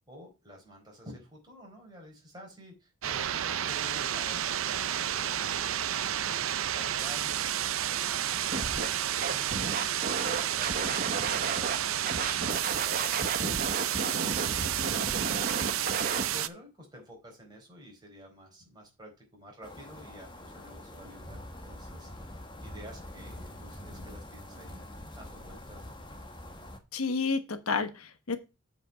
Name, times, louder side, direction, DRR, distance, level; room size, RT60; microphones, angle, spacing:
voice 1, 0.1-3.3 3.6-4.8 5.2-6.4 6.7-9.7 10.1-12.0 12.3-22.3 22.6-24.8 25.1-26.0, equal, 20° right, -1 dB, 4.3 m, -50 dB
sound 1, 3.0-16.5, right 11 dB, 70° right, 0.6 m, -31 dB
Scratching (performance technique), 8.5-8.9 9.2-11.8 12.0-16.2, right 3 dB, 40° right, 1.0 m, -33 dB
sound 2, 19.6-26.8, left 1 dB, 20° left, 1.3 m, -45 dB
voice 2, 26.9-28.4, left 4 dB, 90° left, 9 dB, 1.1 m, -30 dB
7.9 x 5.4 x 5.0 m, 0.28 s
head